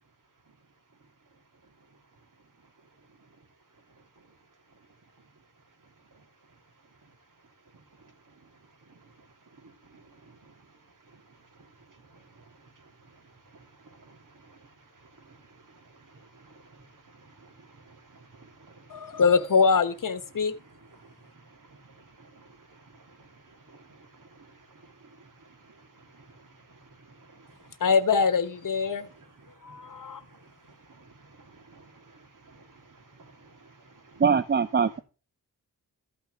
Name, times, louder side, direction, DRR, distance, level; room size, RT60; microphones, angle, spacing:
voice 1, 7.9-8.5 8.9-10.7 11.1-19.2 20.3-20.7 20.9-27.8 29.2-34.2, right 3 dB, 60° right, 2.8 m, -55 dB
voice 2, 18.9-20.5 27.8-29.1 29.6-30.2, left 5 dB, 60° left, 1.2 m, -23 dB
voice 3, 34.2-35.0, right 6 dB, 30° right, 0.4 m, -22 dB
13.5 x 5.8 x 5.0 m
wide cardioid pair, 140°, 36 cm